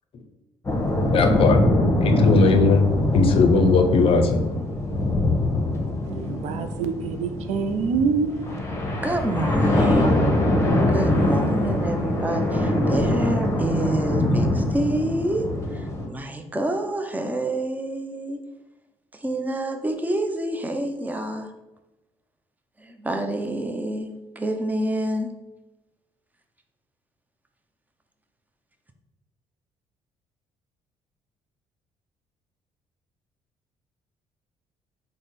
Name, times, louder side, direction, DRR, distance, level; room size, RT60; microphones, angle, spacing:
sound 1, 0.6-16.1, left 1 dB, 20° left, 0.8 m, -23 dB
voice 1, 1.1-1.6 2.0-4.4, left 3 dB, 50° left, 6 dB, 0.5 m, -18 dB
voice 2, 6.0-8.3, right 5 dB, 70° right, 8 dB, 0.4 m, -25 dB
voice 3, 9.0-10.1 10.9-18.4 19.1-21.5 22.8-24.1 24.4-25.3, right 1 dB, 15° right, 5 dB, 0.5 m, -28 dB
3.5 x 2.1 x 4.1 m, 1.0 s
supercardioid pair, 70°, 12 cm